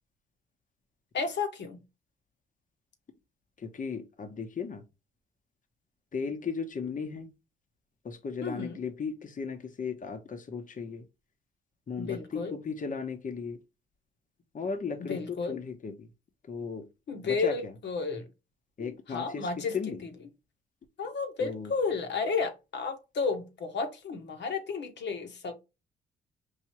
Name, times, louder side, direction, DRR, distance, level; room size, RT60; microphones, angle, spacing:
voice 1, 1.1-1.8 8.4-8.8 12.0-12.5 15.0-15.6 17.1-18.3 18.8-19.8 20.0-20.1 21.0-25.5, left 4 dB, 55° left, 1.2 m, -32 dB
voice 2, 3.6-4.8 6.1-7.3 8.0-11.0 11.9-13.6 14.5-16.1 16.5-16.9 17.2-17.7 18.8-20.0 21.4-21.7, left 5 dB, 40° left, 1.0 m, -36 dB
4.8 x 2.7 x 2.9 m
hypercardioid pair, 50°, 21 cm